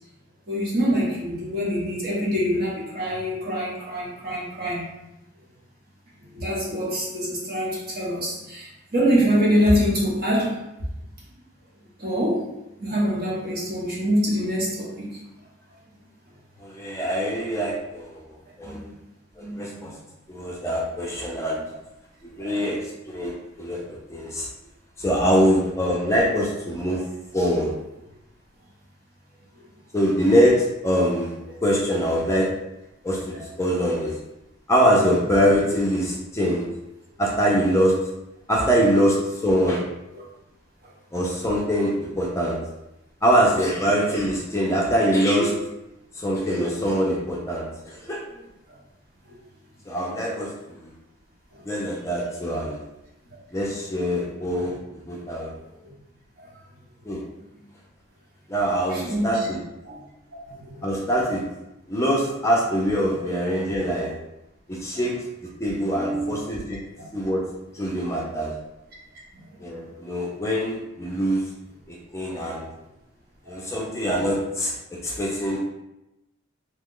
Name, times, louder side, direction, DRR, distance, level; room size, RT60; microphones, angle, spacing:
voice 1, 0.5-4.9 6.3-10.5 12.0-12.4 12.8-15.2 18.6-18.8 19.4-19.9 22.4-22.5 31.5-31.6 40.1-40.2 51.5-51.6 54.6-54.7 56.4-56.5 58.9-59.5 59.8-60.0 60.5-60.8 66.0-66.4 67.0-67.1 73.5-73.6, equal, 50° right, -5 dB, 1.0 m, -25 dB
voice 2, 16.6-18.2 18.6-18.9 19.4-19.9 20.3-21.6 22.2-24.5 25.0-27.0 27.3-27.7 29.9-30.6 30.8-31.3 31.6-32.5 33.0-34.2 34.7-36.6 37.2-37.9 38.5-39.8 41.1-42.6 43.2-45.5 46.1-48.2 49.9-50.9 51.6-52.8 53.5-54.8 55.1-55.5 57.0-57.2 58.5-59.6 60.8-61.4 61.9-64.1 64.7-65.1 65.6-66.8 67.1-67.4 67.7-68.5 69.6-71.4 71.9-72.7 73.5-74.7 75.0-75.6, equal, 15° left, -3 dB, 0.5 m, -23 dB
2.9 x 2.2 x 3.7 m, 0.91 s
head